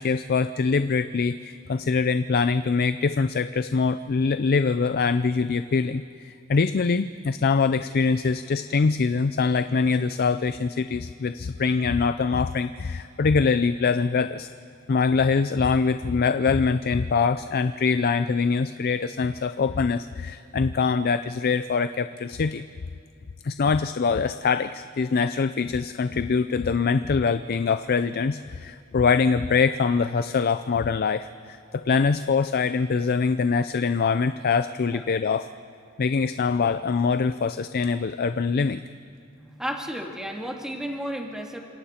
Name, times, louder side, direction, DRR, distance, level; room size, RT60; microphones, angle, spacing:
voice 1, 0.0-14.5 14.9-22.6 23.4-35.5 36.0-38.8, left 5 dB, 45° left, 11 dB, 0.4 m, -23 dB
voice 2, 39.4-41.6, equal, 5° right, 1 dB, 2.0 m, -33 dB
30.0 x 26.5 x 4.4 m, 2.5 s
head